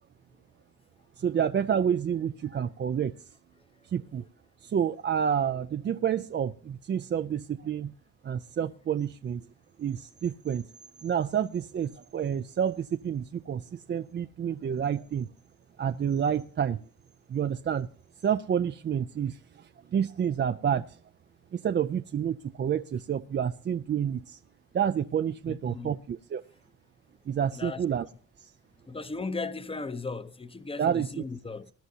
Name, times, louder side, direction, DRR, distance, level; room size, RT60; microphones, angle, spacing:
voice 1, 1.2-3.1 3.9-4.2 4.6-7.9 8.2-9.4 9.8-10.7 11.0-15.3 15.8-16.8 17.3-17.9 18.2-21.0 21.5-24.4 24.7-26.4 27.3-28.1 30.8-31.2, right 8 dB, 35° right, 0.5 m, -29 dB
voice 2, 25.5-26.0 27.5-27.8 28.9-31.7, left 3 dB, 20° left, 0.8 m, -36 dB
20.5 x 11.0 x 2.8 m
cardioid pair, 90°, 30 cm